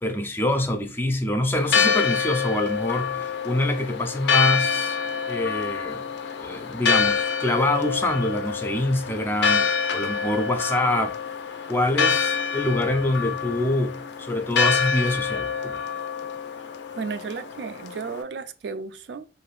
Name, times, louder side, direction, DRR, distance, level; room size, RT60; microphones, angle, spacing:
voice 1, 0.0-5.0 5.3-6.1 6.4-9.6 9.9-11.2 11.7-15.8, left 1 dB, 10° left, 0.4 m, -25 dB
Church bell, 1.6-18.2, left 6 dB, 75° left, 0.4 m, -26 dB
voice 2, 17.0-19.3, right 5 dB, 70° right, 0.3 m, -33 dB
3.3 x 2.6 x 2.3 m
head